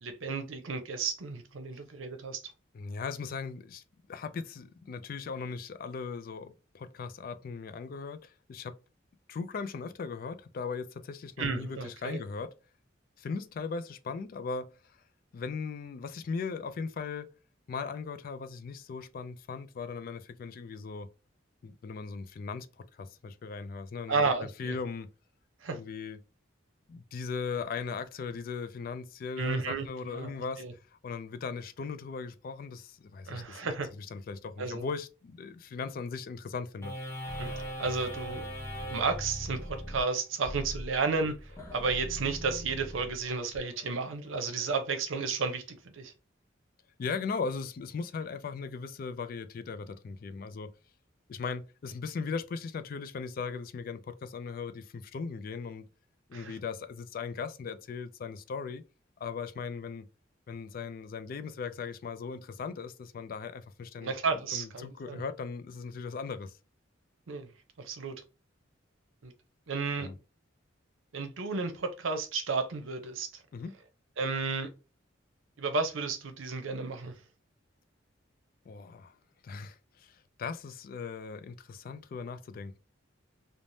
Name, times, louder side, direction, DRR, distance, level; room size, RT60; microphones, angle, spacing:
voice 1, 0.0-2.4 11.4-12.2 24.1-24.8 25.6-25.8 29.4-30.3 30.6-30.7 33.3-33.9 34.6-34.9 37.4-37.5 37.8-38.4 38.9-41.3 41.7-46.1 56.3-56.6 64.0-65.2 67.3-67.5 67.8-68.2 69.2-69.3 69.7-70.1 71.1-73.3 74.2-74.7 75.6-77.1, right 4 dB, 85° right, 0.6 m, -32 dB
voice 2, 2.7-3.8 4.1-8.8 9.3-12.5 13.2-14.7 15.3-17.3 17.7-21.1 21.6-24.3 24.6-25.1 25.7-26.2 26.9-30.6 30.9-33.7 34.0-36.9 43.8-44.0 44.3-44.7 47.0-50.7 51.3-55.8 56.3-58.8 59.2-60.1 60.5-64.1 64.5-66.5 70.0-70.2 73.5-73.7 78.7-79.2 79.4-82.8, left 5 dB, 45° left, 0.3 m, -38 dB
sound 1, 36.8-43.6, equal, 15° left, 0.8 m, -40 dB
3.2 x 2.0 x 2.6 m
head